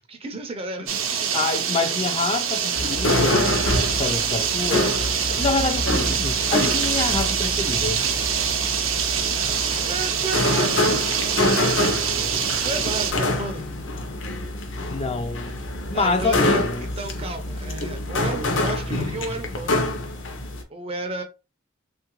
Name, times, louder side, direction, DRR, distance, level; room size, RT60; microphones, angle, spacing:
voice 1, 0.1-1.3 9.4-11.1 12.6-13.7 15.9-19.9 20.7-21.2, right 2 dB, 30° right, 0.5 m, -33 dB
sound 1, 0.9-13.1, right 8 dB, 80° right, 0.6 m, -25 dB
voice 2, 1.3-3.6 3.9-5.0 5.3-8.0 11.8-12.3 14.9-16.9, left 3 dB, 30° left, 0.3 m, -27 dB
sound 2, 2.7-20.6, left 1 dB, 65° left, 0.7 m, -26 dB
3.1 x 2.4 x 2.9 m
head